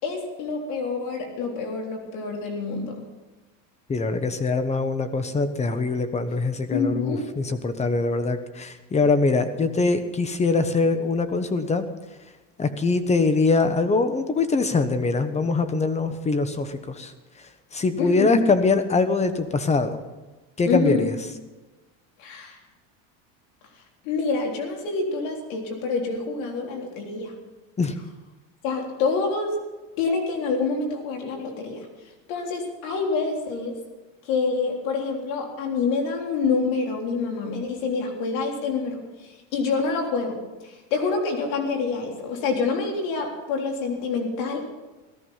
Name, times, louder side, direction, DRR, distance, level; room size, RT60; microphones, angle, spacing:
voice 1, 0.0-3.0 6.7-7.3 18.0-18.5 20.7-21.1 22.2-22.6 24.0-27.3 28.6-29.6 30.0-31.9 32.3-33.8 34.3-44.6, left 4 dB, 80° left, 1 dB, 3.7 m, -27 dB
voice 2, 3.9-11.8 12.6-17.1 17.7-20.0 20.6-21.1 27.8-28.0, left 3 dB, 15° left, 11 dB, 1.1 m, -23 dB
17.5 x 13.0 x 5.7 m, 1.2 s
supercardioid pair, 135°, 40 cm